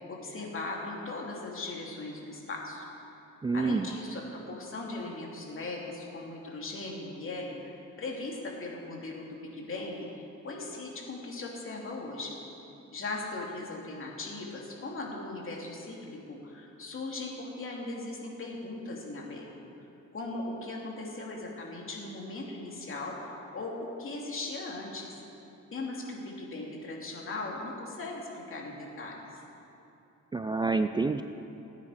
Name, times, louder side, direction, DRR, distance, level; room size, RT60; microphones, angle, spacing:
voice 1, 0.0-2.8 3.5-12.4 12.9-19.5 20.1-25.1 25.7-29.1, left 2 dB, 45° left, -2 dB, 2.9 m, -38 dB
voice 2, 3.4-3.9 30.3-31.2, right 3 dB, 15° right, 9 dB, 0.4 m, -27 dB
17.5 x 9.8 x 5.0 m, 2.9 s
cardioid pair, 90°, 30 cm